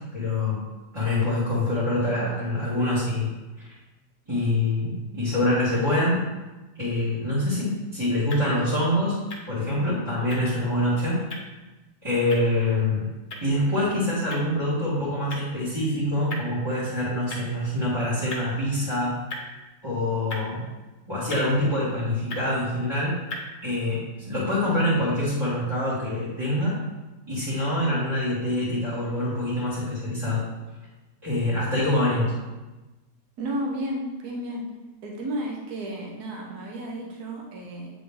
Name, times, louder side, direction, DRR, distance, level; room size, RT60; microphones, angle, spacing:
voice 1, 0.1-0.6 0.9-3.3 3.6-3.7 4.3-6.2 6.8-9.2 9.5-11.2 12.0-13.1 13.4-19.1 19.8-20.6 21.1-23.2 23.6-26.8 27.3-30.4 31.2-32.3, left 1 dB, 15° right, -14 dB, 2.0 m, -25 dB
sound 1, 7.5-23.5, left 1 dB, 45° left, 1.3 m, -43 dB
voice 2, 33.4-34.7 35.0-37.9, right 1 dB, 70° right, -1 dB, 1.5 m, -32 dB
8.6 x 3.8 x 3.6 m, 1.1 s
omnidirectional pair, 1.8 m